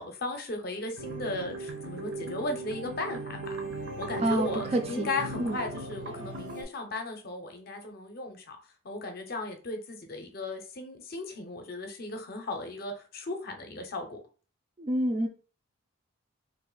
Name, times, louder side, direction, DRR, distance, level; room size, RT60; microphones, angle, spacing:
voice 1, 0.0-3.6 4.0-8.6 8.8-14.2, left 2 dB, 45° left, 5 dB, 0.6 m, -36 dB
sound 1, 1.0-6.6, right 2 dB, 55° right, 0.7 m, -38 dB
voice 2, 4.0-5.1 5.4-5.6 14.8-15.3, right 1 dB, 30° right, 3 dB, 0.4 m, -28 dB
2.5 x 2.4 x 3.8 m, 0.36 s
head